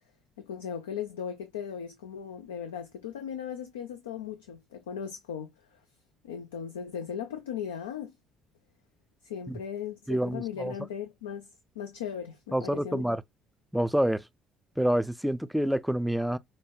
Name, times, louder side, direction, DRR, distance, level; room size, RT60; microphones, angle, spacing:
voice 1, 0.4-5.8 6.2-8.1 9.2-11.5 11.8-13.0, left 8 dB, 75° left, 0.4 m, -37 dB
voice 2, 10.1-10.7 12.5-13.2 13.7-14.2 14.8-16.4, equal, 5° right, 0.4 m, -27 dB
5.0 x 2.1 x 2.3 m
figure-of-eight pair, 50°, 0 cm